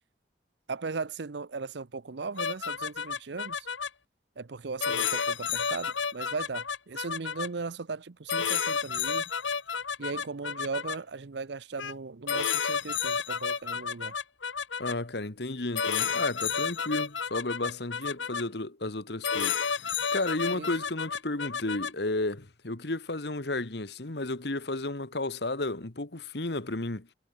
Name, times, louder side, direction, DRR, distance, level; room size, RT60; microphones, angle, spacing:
voice 1, 0.7-3.7 4.4-9.2 10.0-14.1 20.5-20.7, right 4 dB, 70° right, 0.7 m, -37 dB
sound 1, 2.4-3.9 4.8-7.5 8.3-11.0 11.8-12.0 12.3-14.9 15.7-18.4 19.2-21.9, left 6 dB, 90° left, 1.8 m, -31 dB
voice 2, 14.8-27.1, left 2 dB, 60° left, 1.5 m, -33 dB
head